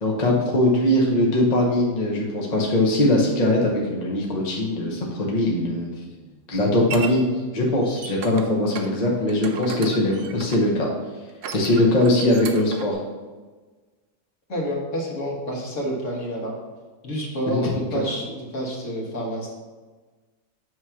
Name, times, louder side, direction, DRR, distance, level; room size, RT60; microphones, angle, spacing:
voice 1, 0.0-5.9 6.5-10.9 11.5-13.0 17.5-17.7, left 1 dB, 30° left, -2 dB, 0.9 m, -21 dB
sound 1, 6.1-7.1 7.7-8.5 8.8-8.9 9.3-10.7 11.3-12.9, right 6 dB, 75° right, 1.3 m, -35 dB
voice 2, 14.5-16.5 17.0-19.5, equal, 50° left, -2 dB, 1.7 m, -28 dB
7.8 x 3.1 x 5.7 m, 1.3 s
omnidirectional pair, 1.8 m